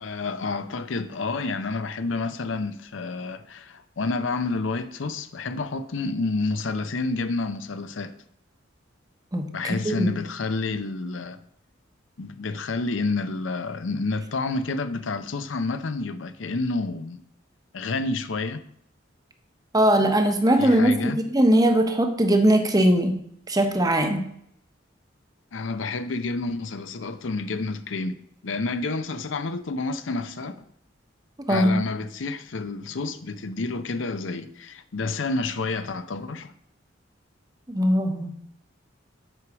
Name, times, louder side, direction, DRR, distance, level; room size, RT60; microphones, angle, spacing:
voice 1, 0.0-8.1 9.5-11.4 12.2-17.2 17.7-18.6 20.4-21.2 25.5-28.1 28.4-30.6 31.5-36.5, left 3 dB, 75° left, 0.6 m, -29 dB
voice 2, 9.3-10.2 19.7-23.2 23.5-24.3 31.5-31.8 37.7-38.3, right 1 dB, 20° right, 0.9 m, -20 dB
7.7 x 4.8 x 6.1 m
head